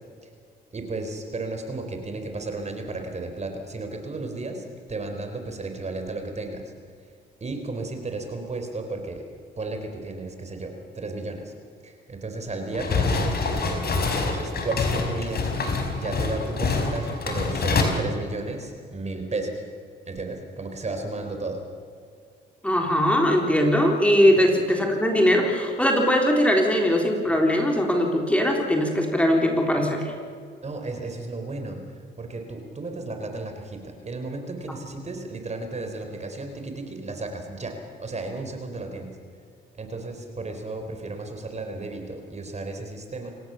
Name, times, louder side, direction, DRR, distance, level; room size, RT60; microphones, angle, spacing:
voice 1, 0.7-6.7 7.4-9.2 9.6-11.5 11.8-13.3 14.1-15.5 15.9-19.6 20.1-21.6 24.4-24.5 30.6-39.2 39.7-43.3, right 2 dB, 35° right, 5 dB, 4.2 m, -33 dB
sound 1, 12.7-17.8, left 4 dB, 50° left, 5.0 m, -26 dB
voice 2, 22.6-30.1, equal, 5° left, 1 dB, 3.8 m, -20 dB
28.0 x 17.5 x 7.1 m, 2.2 s
cardioid pair, 90°, 20 cm